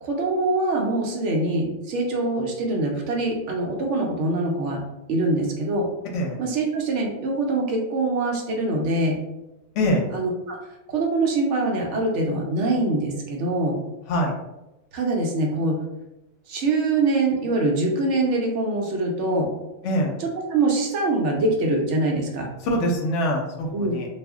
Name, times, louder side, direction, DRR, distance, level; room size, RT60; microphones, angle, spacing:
voice 1, 0.0-4.8 5.1-5.9 6.4-9.2 10.1-10.6 10.9-13.8 14.9-15.8 16.5-19.5 20.2-22.5 23.7-24.0, right 2 dB, 70° right, 0 dB, 0.8 m, -24 dB
voice 2, 19.8-20.1 22.6-24.1, equal, 70° left, 1 dB, 0.9 m, -23 dB
2.4 x 2.1 x 3.4 m, 0.96 s
omnidirectional pair, 1.4 m